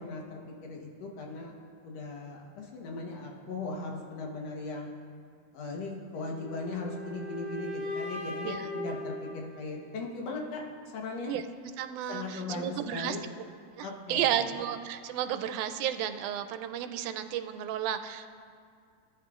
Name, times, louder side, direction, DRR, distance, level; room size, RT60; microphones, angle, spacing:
voice 1, 0.0-1.5 1.8-4.9 5.5-10.6 10.9-11.3 12.1-13.2 13.8-14.4, left 3 dB, 65° left, 0 dB, 2.1 m, -38 dB
sound 1, 6.1-10.2, left 1 dB, 40° left, 1.7 m, -39 dB
voice 2, 11.3-13.2 13.8-18.3, right 10 dB, 90° right, 9 dB, 2.0 m, -33 dB
18.0 x 9.6 x 2.4 m, 2.2 s
omnidirectional pair, 3.4 m